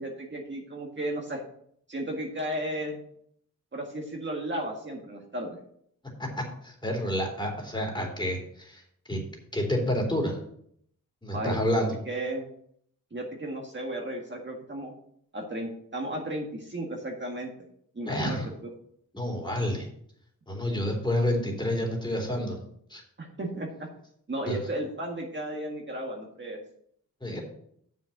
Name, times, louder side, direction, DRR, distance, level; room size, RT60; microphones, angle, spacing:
voice 1, 0.0-1.4 1.9-3.0 3.7-5.6 11.3-12.5 13.1-14.9 15.3-17.5 17.9-18.4 23.2-23.9 24.3-26.6, right 1 dB, 35° right, 0 dB, 1.9 m, -34 dB
voice 2, 6.2-8.8 9.1-9.2 9.5-10.4 11.2-11.9 18.1-18.5 19.1-19.9 20.5-23.0 24.5-24.6 27.2-27.4, left 1 dB, 15° left, 1 dB, 3.6 m, -29 dB
6.9 x 6.5 x 6.6 m, 0.67 s
cardioid pair, 70°, 34 cm